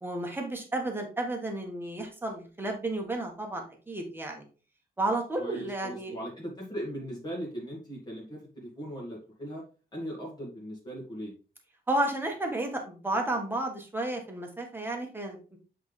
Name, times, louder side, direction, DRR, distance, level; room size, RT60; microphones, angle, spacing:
voice 1, 0.0-4.4 5.0-6.2 11.9-15.6, right 2 dB, 15° right, 2 dB, 1.4 m, -32 dB
voice 2, 5.4-9.6 9.9-11.3, equal, 25° left, -3 dB, 1.8 m, -38 dB
7.9 x 4.0 x 3.3 m, 0.35 s
wide cardioid pair, 180°, 17 cm